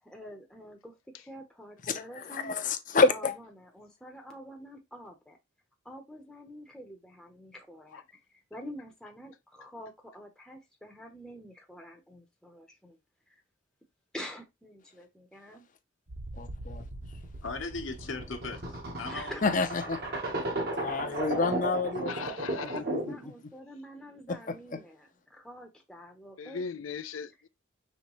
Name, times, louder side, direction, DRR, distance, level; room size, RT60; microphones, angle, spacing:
voice 1, 0.0-2.5 3.1-5.4 5.8-13.0 13.3-13.4 14.1-15.7 19.1-19.5 20.2-20.7 21.1-21.4 22.8-26.6, equal, 5° left, 0.7 m, -47 dB
voice 2, 1.9-3.3 16.4-16.8 19.4-20.0 20.8-22.1 22.8-23.3 24.3-24.8, left 4 dB, 40° left, 0.6 m, -29 dB
sound 1, 16.1-23.3, right 2 dB, 50° right, 1.1 m, -35 dB
voice 3, 17.4-19.4, left 3 dB, 70° left, 1.0 m, -38 dB
voice 4, 20.7-21.2 22.1-22.8 26.4-27.5, left 5 dB, 85° left, 0.5 m, -39 dB
5.3 x 3.3 x 3.0 m
head